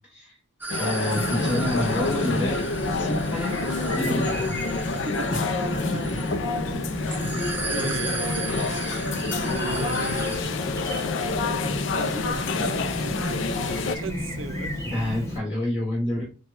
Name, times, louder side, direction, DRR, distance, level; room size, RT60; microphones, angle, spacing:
sound 1, 0.6-10.4, right 2 dB, 10° right, 0.6 m, -36 dB
sound 2, 0.7-14.0, left 4 dB, 70° left, 0.5 m, -28 dB
voice 1, 0.8-2.6 3.0-3.7 3.9-4.3 5.3-5.5 5.8-6.2 14.9-16.2, left 1 dB, 35° left, 1.8 m, -28 dB
Chirp tweet, 1.1-15.4, left 1 dB, 15° left, 1.0 m, -32 dB
voice 2, 5.1-5.4 7.3-8.9 9.3-10.8 11.8-14.8, right 4 dB, 90° right, 0.6 m, -36 dB
6.2 x 2.2 x 2.5 m
head